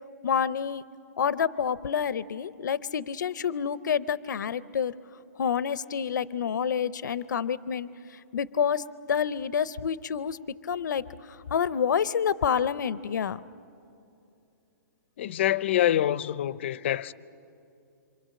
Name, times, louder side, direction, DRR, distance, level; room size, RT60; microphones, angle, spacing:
voice 1, 0.2-0.8 1.2-4.9 5.4-10.4 10.6-13.4, left 7 dB, 80° left, 0.6 m, -28 dB
voice 2, 15.2-17.1, left 12 dB, 40° left, 0.5 m, -26 dB
27.0 x 26.0 x 7.6 m
hypercardioid pair, 170°, 10 cm